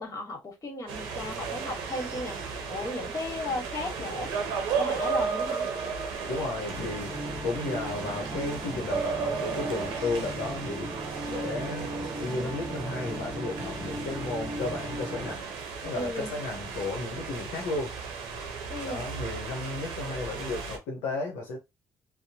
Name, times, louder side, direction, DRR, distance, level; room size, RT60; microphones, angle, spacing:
voice 1, 0.0-2.4 2.7-4.3 4.8-5.7 15.8-16.4 18.7-19.1, left 2 dB, 40° left, 1.5 m, -35 dB
sound 1, 0.9-20.8, right 5 dB, 90° right, 0.7 m, -35 dB
voice 2, 6.3-7.2 7.4-10.9 11.3-11.9 12.2-15.5 15.8-18.0 18.8-21.6, left 3 dB, 85° left, 0.8 m, -33 dB
sound 2, 6.7-15.4, equal, ahead, 1.1 m, -38 dB
2.8 x 2.1 x 2.7 m
supercardioid pair, 60°, 8 cm